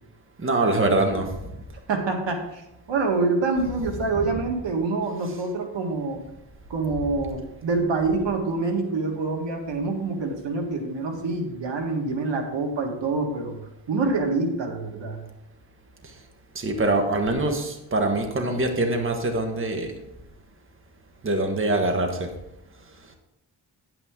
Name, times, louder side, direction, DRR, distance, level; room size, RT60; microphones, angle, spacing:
voice 1, 0.4-1.3 4.2-4.3 16.5-19.9 21.2-22.3, right 2 dB, 30° right, 4 dB, 1.4 m, -24 dB
voice 2, 1.9-2.6 2.9-6.2 6.7-13.6 13.9-15.2, right 3 dB, 85° right, 3 dB, 1.8 m, -26 dB
10.0 x 9.0 x 3.7 m, 0.87 s
wide cardioid pair, 110°, 43 cm